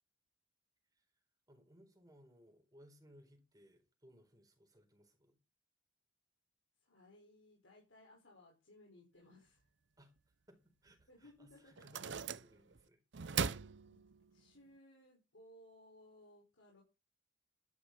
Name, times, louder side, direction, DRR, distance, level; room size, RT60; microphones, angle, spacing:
voice 1, 1.5-5.4 10.0-13.0, equal, 20° right, 4.2 m, -64 dB
voice 2, 6.8-9.7 11.1-11.9 13.9-14.0 14.3-16.8, left 1 dB, 85° left, 5.6 m, -62 dB
sound 1, 11.0-11.1 11.8-12.8 13.1-14.5, right 6 dB, 65° right, 0.6 m, -40 dB
12.5 x 11.0 x 4.4 m
head